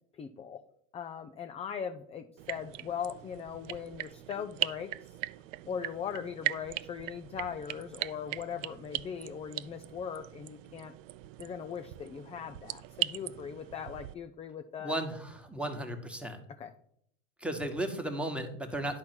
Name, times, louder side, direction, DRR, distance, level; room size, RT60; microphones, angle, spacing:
voice 1, 0.2-0.6 0.9-4.9 5.7-10.9 11.4-14.9 16.6-16.7, left 7 dB, 15° left, 7 dB, 0.4 m, -39 dB
sound 1, 2.4-14.1, right 17 dB, 70° right, 0.5 m, -39 dB
voice 2, 14.8-16.4 17.4-19.0, right 1 dB, 5° right, 5 dB, 1.3 m, -35 dB
10.5 x 4.2 x 6.0 m, 0.69 s
hypercardioid pair, 100°, 39 cm